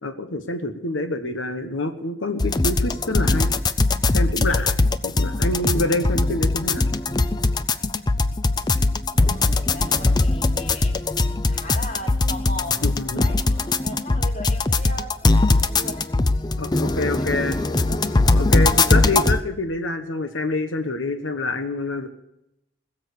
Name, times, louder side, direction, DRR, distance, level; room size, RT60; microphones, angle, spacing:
voice 1, 0.0-3.5 4.1-4.8 5.0-6.9 12.8-13.2 16.6-17.5 18.3-22.1, left 2 dB, 90° left, 7 dB, 1.3 m, -26 dB
sound 1, 2.4-19.4, left 3 dB, 20° left, 0.5 m, -20 dB
voice 2, 9.4-13.4 13.8-16.5 17.1-18.0, left 1 dB, 40° left, 3 dB, 2.4 m, -38 dB
20.5 x 7.5 x 8.5 m, 0.82 s
head